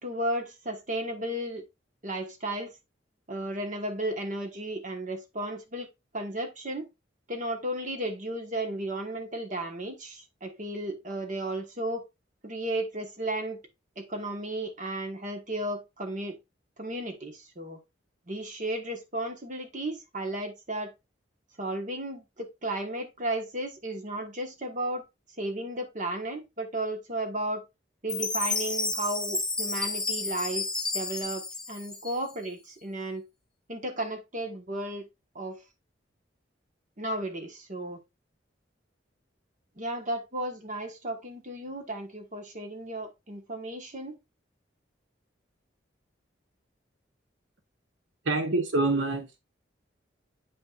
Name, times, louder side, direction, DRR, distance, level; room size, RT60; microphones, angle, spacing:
voice 1, 0.0-1.6 2.0-2.8 3.3-5.9 6.1-6.8 7.3-12.0 12.4-13.6 14.0-16.4 16.8-17.8 18.3-20.9 21.6-25.0 25.4-27.6 28.0-30.7 30.9-33.2 33.7-35.1 35.3-35.6 37.0-38.0 39.8-44.1, right 1 dB, 40° right, 1.4 m, -34 dB
Chime, 28.1-32.5, left 3 dB, 5° left, 0.7 m, -31 dB
voice 2, 48.3-49.4, right 2 dB, 85° right, 0.9 m, -26 dB
8.4 x 5.4 x 2.5 m
head